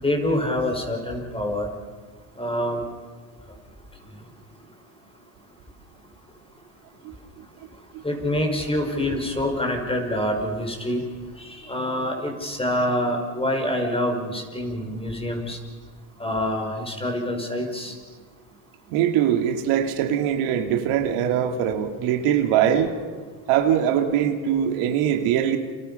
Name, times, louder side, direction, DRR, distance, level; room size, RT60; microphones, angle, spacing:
voice 1, 0.0-1.7 2.4-2.8 8.0-11.0 11.4-15.6 16.2-17.9, left 1 dB, 10° left, 2 dB, 5.5 m, -26 dB
voice 2, 18.9-22.9 23.5-25.6, right 9 dB, 90° right, 4 dB, 2.7 m, -22 dB
29.5 x 29.0 x 5.7 m, 1.5 s
cardioid pair, 115°, 49 cm